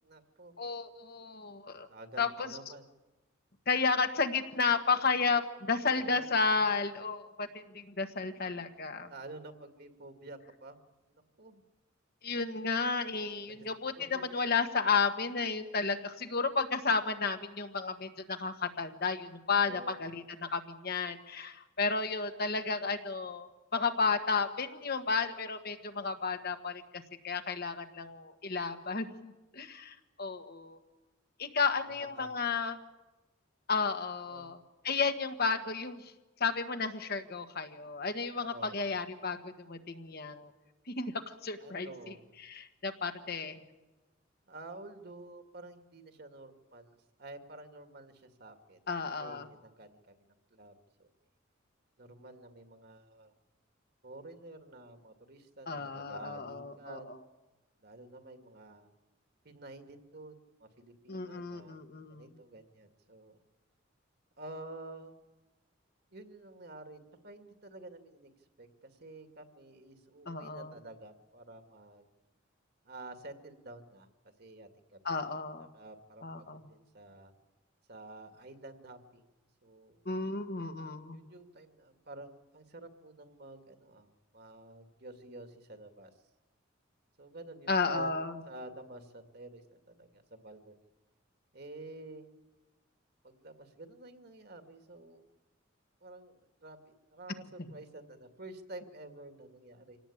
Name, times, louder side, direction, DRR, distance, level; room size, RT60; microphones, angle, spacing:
voice 1, 0.0-0.5 1.9-2.8 5.9-6.3 9.0-10.8 11.1-11.6 13.5-13.6 14.0-14.4 19.5-20.0 31.9-32.3 34.3-34.5 38.4-38.8 41.6-42.3 44.5-48.8 49.2-51.1 52.0-53.3 54.0-57.1 57.8-58.9 59.4-61.8 62.1-63.4 64.4-65.2 66.1-68.3 68.6-72.1 72.8-74.1 74.4-75.0 75.3-75.4 75.7-77.3 77.9-79.3 79.6-80.0 81.1-84.1 84.3-86.1 87.2-88.1 88.5-90.8 91.5-92.3 93.2-95.3 96.0-100.0, right 2 dB, 55° right, 7 dB, 2.2 m, -50 dB
voice 2, 0.6-1.9 2.2-2.6 3.7-9.1 12.2-30.8 31.4-32.8 33.7-34.6 34.8-36.1 36.4-40.5 40.9-42.1 42.4-43.6 48.9-49.5 55.7-57.0 61.1-62.3 70.2-70.8 75.0-75.7 76.2-76.7 80.0-81.3 87.7-88.3, left 4 dB, 50° left, 7 dB, 1.5 m, -32 dB
26.0 x 18.0 x 8.6 m, 1.1 s
head